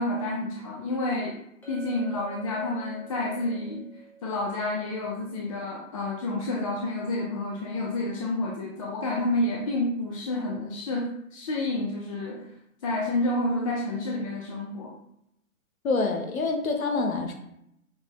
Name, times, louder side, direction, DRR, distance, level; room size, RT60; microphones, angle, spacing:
voice 1, 0.0-1.4 1.7-3.8 4.2-12.4 12.8-14.9, left 2 dB, 25° left, -2 dB, 0.4 m, -29 dB
Chink clink, 1.6-6.1, right 5 dB, 5° left, 1.0 m, -49 dB
voice 2, 15.8-17.3, left 3 dB, 80° left, 4 dB, 1.0 m, -26 dB
6.0 x 2.6 x 2.9 m, 0.77 s
hypercardioid pair, 125°, 41 cm